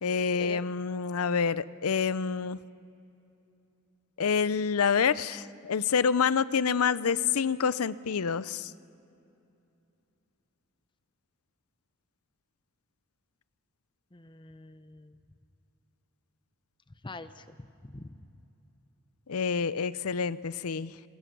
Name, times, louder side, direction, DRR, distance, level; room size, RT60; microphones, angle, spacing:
voice 1, 0.0-2.6 4.2-8.7 19.3-20.9, left 6 dB, 75° left, 17 dB, 0.6 m, -27 dB
voice 2, 14.1-15.2 17.0-18.2, left 2 dB, 20° left, 11 dB, 0.8 m, -45 dB
26.0 x 21.5 x 6.1 m, 2.8 s
head